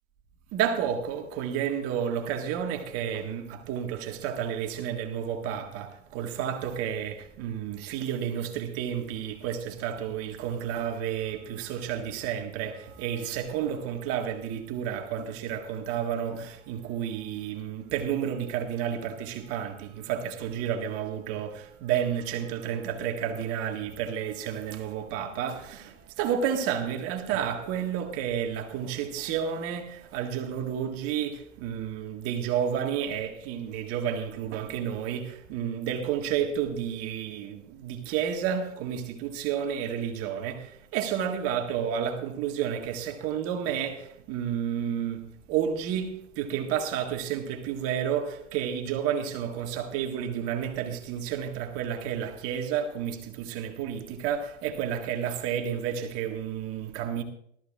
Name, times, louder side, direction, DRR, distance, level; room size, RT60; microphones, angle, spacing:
voice 1, 0.5-45.2 45.5-57.2, right 9 dB, 40° right, 1.7 m, -31 dB
18.5 x 13.5 x 2.4 m
hypercardioid pair, 115°, 36 cm